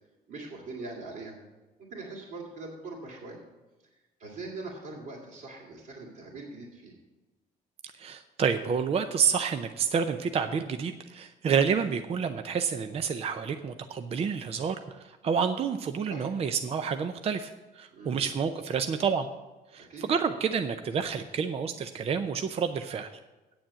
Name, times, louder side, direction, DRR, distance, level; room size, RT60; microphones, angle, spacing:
voice 1, 0.3-1.4 1.8-3.4 4.2-6.9 16.1-16.3 17.9-18.4 19.8-20.0, right 3 dB, 55° right, -5 dB, 2.6 m, -42 dB
voice 2, 8.0-17.5 17.7-19.3 19.7-23.1, right 6 dB, 35° right, 8 dB, 0.5 m, -29 dB
9.1 x 7.1 x 7.5 m, 1.2 s
cardioid pair, 110°, 17 cm